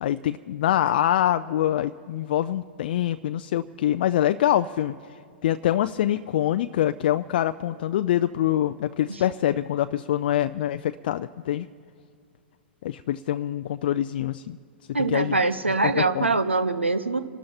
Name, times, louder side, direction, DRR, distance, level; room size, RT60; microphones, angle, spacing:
voice 1, 0.0-5.0 5.4-11.7 12.8-14.6 14.9-15.4 15.8-16.3, left 12 dB, 55° left, 10 dB, 0.4 m, -25 dB
voice 2, 14.9-17.2, right 3 dB, 85° right, 11 dB, 0.9 m, -23 dB
29.0 x 12.5 x 2.9 m, 2.2 s
figure-of-eight pair, 105°, 6 cm